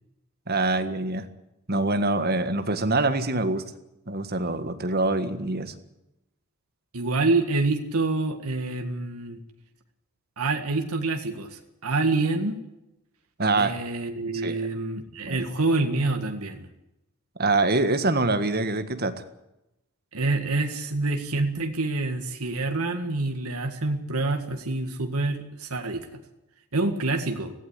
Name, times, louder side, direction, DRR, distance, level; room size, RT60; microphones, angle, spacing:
voice 1, 0.5-1.2 1.7-3.6 4.1-5.7 13.4-13.7 14.4-14.6 15.3-15.4 17.4-19.1, right 2 dB, 45° right, 9 dB, 1.7 m, -24 dB
voice 2, 6.9-9.4 10.4-12.6 13.6-16.7 20.1-26.2 26.7-27.5, right 3 dB, 80° right, 4 dB, 1.9 m, -27 dB
17.0 x 15.5 x 9.9 m, 0.90 s
head